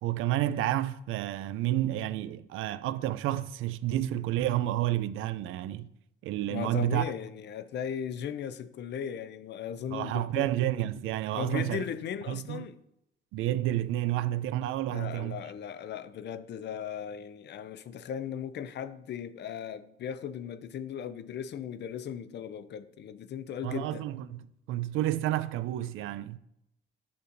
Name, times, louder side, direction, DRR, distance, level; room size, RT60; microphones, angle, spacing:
voice 1, 0.0-5.9 6.2-7.1 9.9-11.8 12.3-12.7 13.3-15.4 23.6-26.4, right 14 dB, 85° right, 0.4 m, -30 dB
voice 2, 6.5-10.5 11.3-12.8 14.9-24.1, left 8 dB, 60° left, 0.5 m, -37 dB
8.7 x 6.6 x 2.6 m
cardioid pair, 90°, 20 cm